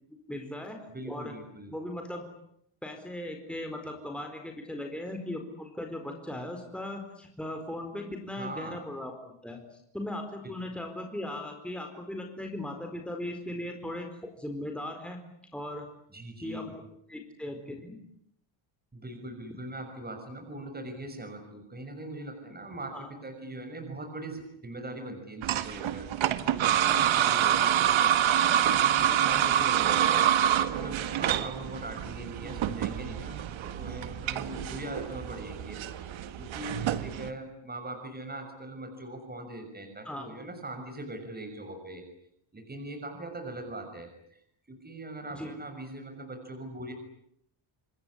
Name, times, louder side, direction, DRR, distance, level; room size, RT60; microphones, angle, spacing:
voice 1, 0.3-0.8 1.0-1.3 1.7-2.2 2.8-15.2 15.5-15.9 16.4-16.8 17.1-18.0 22.9-23.1 32.4-32.5 40.0-40.3 45.3-45.6, left 1 dB, ahead, 3 dB, 4.4 m, -38 dB
voice 2, 0.9-1.7 8.3-8.8 10.4-10.5 16.1-16.7 18.9-36.1 36.5-42.0 42.5-44.1 44.7-46.9, right 1 dB, 20° right, 5 dB, 6.3 m, -41 dB
sound 1, 25.4-37.3, right 10 dB, 65° right, 1.9 m, -27 dB
27.5 x 20.5 x 10.0 m, 0.73 s
cardioid pair, 115°, 50 cm